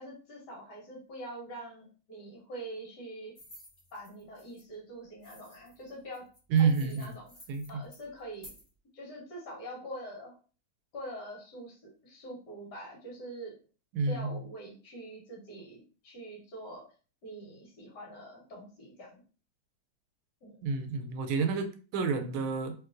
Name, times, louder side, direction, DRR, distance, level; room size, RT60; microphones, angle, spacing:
voice 1, 0.0-3.3 3.9-6.2 6.6-7.3 7.7-8.5 8.9-10.3 10.9-13.5 14.1-16.8 17.2-19.2 20.4-20.6, right 1 dB, 55° left, -2 dB, 1.7 m, -44 dB
sound 1, 3.3-4.6 5.2-8.7, equal, 20° left, 1.1 m, -54 dB
voice 2, 6.5-7.1 7.5-7.8 13.9-14.4 20.6-22.7, right 5 dB, 90° right, 7 dB, 1.4 m, -29 dB
3.2 x 3.0 x 2.5 m, 0.37 s
omnidirectional pair, 2.2 m